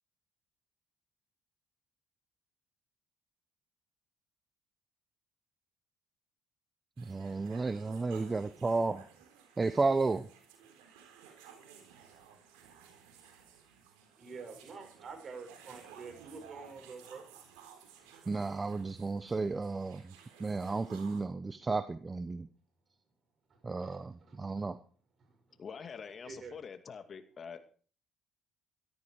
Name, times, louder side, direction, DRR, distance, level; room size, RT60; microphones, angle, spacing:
voice 1, 7.0-9.0 9.6-10.3 18.3-20.1 20.4-22.5 23.6-24.8, right 3 dB, 25° right, 12 dB, 1.0 m, -33 dB
sound 1, 7.0-21.2, right 7 dB, 85° right, 3.9 m, -56 dB
voice 2, 14.2-17.4 23.5-24.6 25.2-25.6 26.2-26.5, right 4 dB, 45° right, 5 dB, 6.4 m, -48 dB
voice 3, 25.6-27.6, left 6 dB, 45° left, 8 dB, 2.4 m, -45 dB
14.5 x 13.5 x 4.9 m, 0.42 s
supercardioid pair, 70°, 0 cm